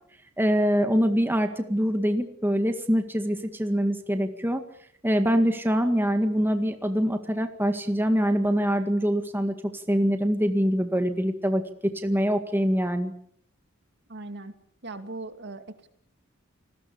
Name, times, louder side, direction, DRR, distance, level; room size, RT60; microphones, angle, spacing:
voice 1, 0.4-4.6 5.0-9.5 9.9-13.1, equal, 10° right, 6 dB, 1.9 m, -24 dB
voice 2, 14.1-14.6 14.8-15.9, right 2 dB, 55° right, 8 dB, 2.6 m, -39 dB
29.0 x 20.5 x 7.1 m, 0.64 s
head